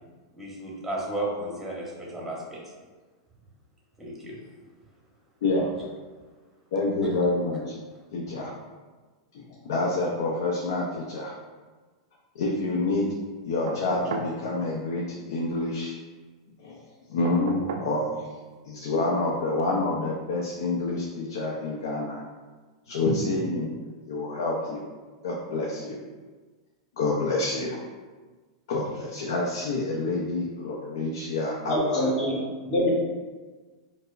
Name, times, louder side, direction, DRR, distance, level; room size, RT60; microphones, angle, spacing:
voice 1, 0.3-2.6 4.0-4.4 7.9-8.0, right 1 dB, 5° right, -4 dB, 0.9 m, -33 dB
voice 2, 5.4-5.7 6.7-7.7 8.1-8.5 9.6-11.3 12.4-13.1 13.4-15.9 16.6-16.8 17.1-18.2 18.6-22.2 22.9-23.7 24.0-24.9 25.2-26.0 27.0-27.8 28.7-32.1, left 2 dB, 70° left, -3 dB, 0.6 m, -27 dB
sound 1, 13.7-14.4 17.2-18.0 19.6-19.7, right 3 dB, 80° right, 0.4 m, -34 dB
voice 3, 31.7-32.9, left 1 dB, 35° left, -7 dB, 1.2 m, -25 dB
4.5 x 2.0 x 2.5 m, 1.3 s
hypercardioid pair, 115°, 2 cm